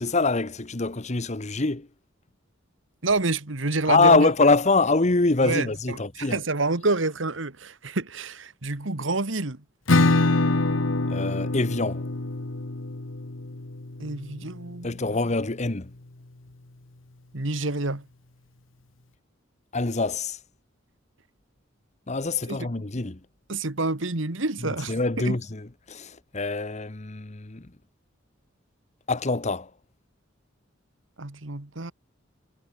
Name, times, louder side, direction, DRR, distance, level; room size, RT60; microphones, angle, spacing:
voice 1, 0.0-1.9 3.9-6.4 11.1-12.1 14.8-15.9 19.7-20.4 22.1-23.2 24.6-27.7 29.1-29.7, left 3 dB, 35° left, 1.1 m, -24 dB
voice 2, 3.0-4.3 5.4-9.6 14.0-15.2 17.3-18.1 22.5-22.6 23.5-25.4 31.2-31.9, right 3 dB, 75° right, 1.9 m, -28 dB
Acoustic guitar / Strum, 9.9-15.3, left 2 dB, 80° left, 1.3 m, -25 dB
head